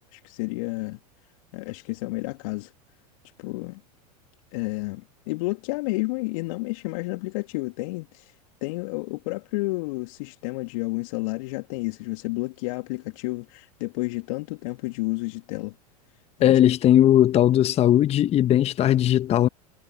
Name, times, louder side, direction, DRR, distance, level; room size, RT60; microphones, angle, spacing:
voice 1, 0.1-1.0 1.5-2.7 3.4-3.8 4.5-8.3 8.6-15.7 16.4-16.6, left 25 dB, 55° left, 2.2 m, -31 dB
voice 2, 16.4-19.5, left 12 dB, 30° left, 1.2 m, -18 dB
figure-of-eight pair, 85°, 20 cm